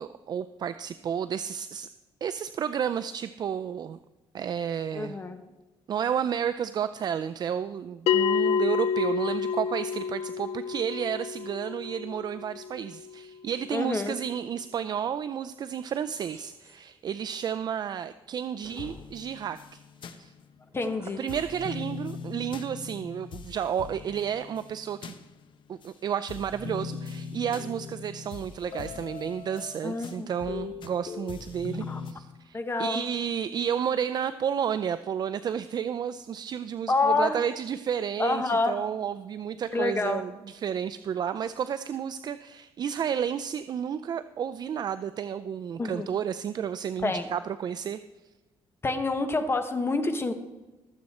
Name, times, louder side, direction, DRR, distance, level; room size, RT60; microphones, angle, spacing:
voice 1, 0.0-1.9 2.2-4.0 4.3-5.2 5.9-19.8 20.2-20.3 21.2-25.2 25.7-48.0, right 8 dB, 45° right, 11 dB, 0.4 m, -31 dB
voice 2, 4.9-5.4 13.7-14.2 20.7-21.2 29.8-30.3 31.9-32.0 32.5-33.0 36.9-37.4 38.2-38.8 39.7-40.2 45.8-46.1 47.0-47.3 48.8-50.3, left 3 dB, 25° left, 8 dB, 1.2 m, -27 dB
Bell, 8.1-13.1, left 7 dB, 85° left, 0.4 m, -29 dB
sound 1, 16.2-16.9 18.2-19.1 20.6-21.6, right 3 dB, 30° right, 4.4 m, -52 dB
sound 2, 18.6-20.9 21.3-25.9 26.3-32.1, left 6 dB, 55° left, 0.9 m, -40 dB
19.0 x 7.8 x 4.2 m, 1.1 s
cardioid pair, 130°, 10 cm